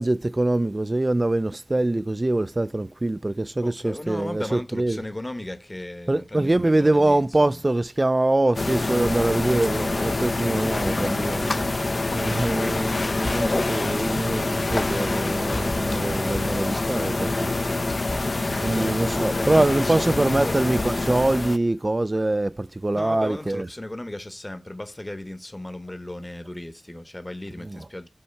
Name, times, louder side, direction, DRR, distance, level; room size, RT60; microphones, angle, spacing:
voice 1, 0.0-5.0 6.1-11.7 12.1-18.2 18.6-23.7 27.7-27.8, right 2 dB, 40° right, 0.3 m, -24 dB
voice 2, 3.6-7.6 18.7-20.6 22.9-28.1, left 1 dB, 25° left, 0.9 m, -36 dB
sound 1, 8.5-21.6, left 2 dB, 65° left, 0.5 m, -26 dB
5.6 x 4.3 x 5.6 m
wide cardioid pair, 65°, 0 cm